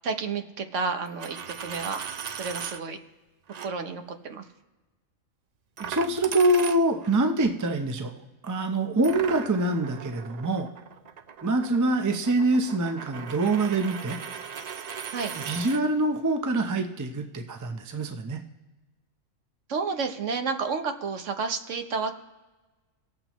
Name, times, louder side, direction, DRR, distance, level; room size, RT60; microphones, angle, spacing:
voice 1, 0.0-2.0 2.4-3.0 3.6-4.4 15.1-15.3 19.7-22.1, right 4 dB, 65° right, 6 dB, 1.2 m, -30 dB
Coin (dropping), 1.1-2.8 3.5-3.7 5.8-7.2 9.0-15.8, right 7 dB, 85° right, 0.3 m, -38 dB
voice 2, 5.8-8.1 8.4-10.7 11.4-14.2 15.4-18.4, right 2 dB, 20° right, 5 dB, 0.5 m, -25 dB
19.0 x 7.3 x 3.0 m, 1.2 s
omnidirectional pair, 1.4 m